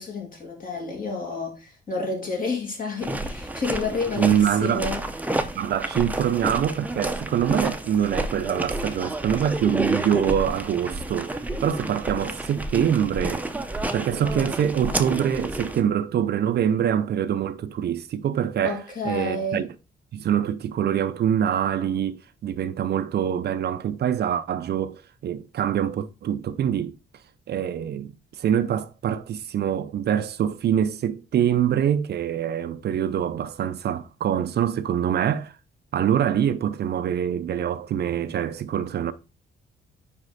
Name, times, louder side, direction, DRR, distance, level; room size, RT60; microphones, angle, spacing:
voice 1, 0.0-5.0 18.6-19.6, left 3 dB, 45° left, 2.6 m, -30 dB
sound 1, 3.0-15.8, right 1 dB, 10° right, 0.7 m, -30 dB
voice 2, 4.2-4.8 5.5-13.4 13.9-19.7 20.1-27.0 27.5-35.5 35.9-39.1, right 9 dB, 55° right, 0.5 m, -25 dB
5.2 x 4.9 x 4.0 m
cardioid pair, 90°, 20 cm